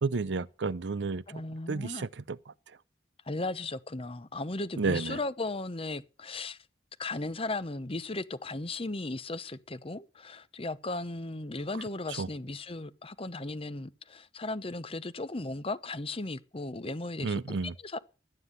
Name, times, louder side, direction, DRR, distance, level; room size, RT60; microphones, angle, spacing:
voice 1, 0.0-1.2 1.7-2.8 4.8-5.2 12.1-12.3 17.2-17.8, right 4 dB, 80° right, 0.6 m, -32 dB
voice 2, 1.3-2.1 3.3-6.6 7.0-17.6 17.8-18.0, left 2 dB, 30° left, 0.9 m, -36 dB
13.0 x 9.6 x 6.8 m
head